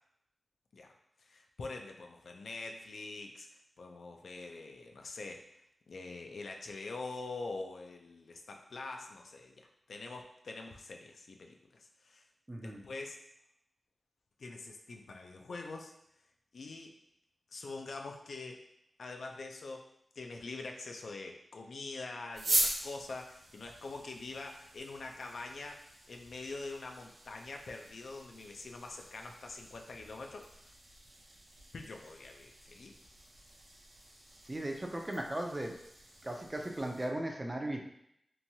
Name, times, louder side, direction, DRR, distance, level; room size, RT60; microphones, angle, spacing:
voice 1, 1.2-3.5 3.8-5.4 5.9-12.2 12.6-13.2 14.4-15.9 16.5-17.0 17.5-18.6 19.0-19.9 20.2-25.8 26.1-30.7 31.7-33.0, left 3 dB, 75° left, 3 dB, 0.3 m, -44 dB
voice 2, 12.5-12.8 34.4-35.8 36.2-37.8, right 1 dB, 20° right, 2 dB, 0.4 m, -37 dB
sound 1, 22.3-37.1, right 1 dB, 70° right, 0.7 m, -42 dB
2.9 x 2.2 x 2.7 m, 0.76 s
wide cardioid pair, 100°, 0 cm